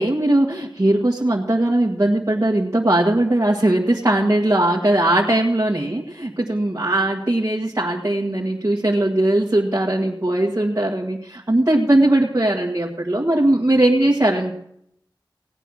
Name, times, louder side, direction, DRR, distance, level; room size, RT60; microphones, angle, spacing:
voice 1, 0.0-14.5, right 1 dB, 40° right, -3 dB, 1.7 m, -19 dB
17.5 x 9.0 x 6.3 m, 0.73 s
wide cardioid pair, 45°, 8 cm